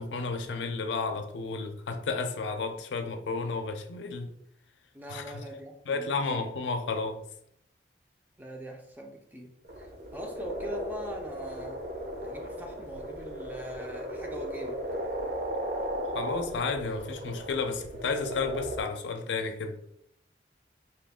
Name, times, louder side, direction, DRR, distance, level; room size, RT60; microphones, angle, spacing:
voice 1, 0.0-4.3 5.1-5.4 5.9-7.2 16.1-19.7, left 4 dB, 85° left, 0.4 m, -32 dB
voice 2, 4.9-6.4 8.4-11.9 12.2-14.8, equal, 10° right, 0.3 m, -42 dB
sound 1, 9.6-18.8, right 1 dB, 60° right, 0.6 m, -36 dB
2.7 x 2.4 x 3.5 m
head